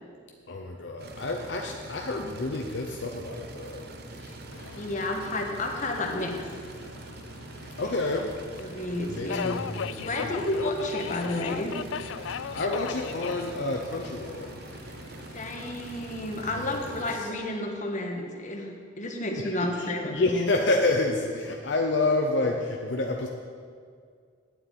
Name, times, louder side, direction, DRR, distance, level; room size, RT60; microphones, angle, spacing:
voice 1, 0.5-4.4 7.8-8.3 9.1-10.4 12.2-14.6 16.6-16.9 17.2-17.3 19.4-23.3, left 2 dB, 65° left, 1 dB, 0.8 m, -29 dB
sound 1, 1.0-17.2, right 2 dB, 55° right, 1.0 m, -44 dB
Subway metro underground, 4.5-16.5, left 7 dB, 85° left, 0.4 m, -40 dB
voice 2, 4.7-6.3 7.8-7.9 8.6-9.6 10.0-11.8 15.3-20.5, left 1 dB, 40° left, 2 dB, 1.5 m, -31 dB
9.3 x 7.5 x 8.7 m, 2.1 s
head